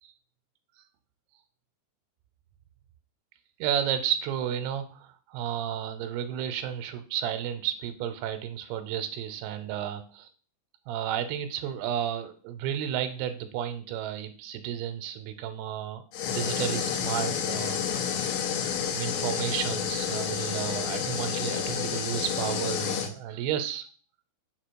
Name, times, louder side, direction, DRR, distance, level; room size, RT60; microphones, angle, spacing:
voice 1, 3.6-10.3 10.9-16.0 16.3-17.8 18.9-23.9, right 10 dB, 90° right, 9 dB, 2.6 m, -32 dB
sound 1, 16.1-23.1, left 8 dB, 80° left, 2.5 m, -30 dB
4.9 x 4.8 x 4.5 m, 0.41 s
omnidirectional pair, 4.5 m